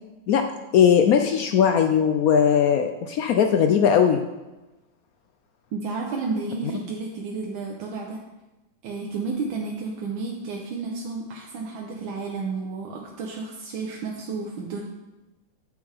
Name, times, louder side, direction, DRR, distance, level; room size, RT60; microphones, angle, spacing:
voice 1, 0.7-4.2 6.6-6.7, left 8 dB, 80° left, 6 dB, 0.8 m, -19 dB
voice 2, 5.7-8.2 8.8-14.8, right 4 dB, 90° right, -1 dB, 1.6 m, -31 dB
8.9 x 7.0 x 3.4 m, 1.1 s
omnidirectional pair, 2.1 m